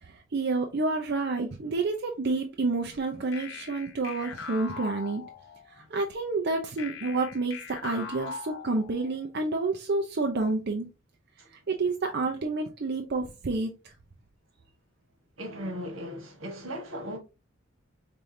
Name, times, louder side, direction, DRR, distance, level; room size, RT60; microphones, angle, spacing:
voice 1, 0.0-5.2 5.7-10.9 11.5-13.9, right 3 dB, 55° right, 0.6 m, -29 dB
sound 1, 3.3-5.8 6.8-9.3, left 5 dB, 65° left, 0.7 m, -41 dB
voice 2, 15.4-17.2, equal, 85° right, 1.5 m, -37 dB
5.3 x 3.2 x 2.7 m
head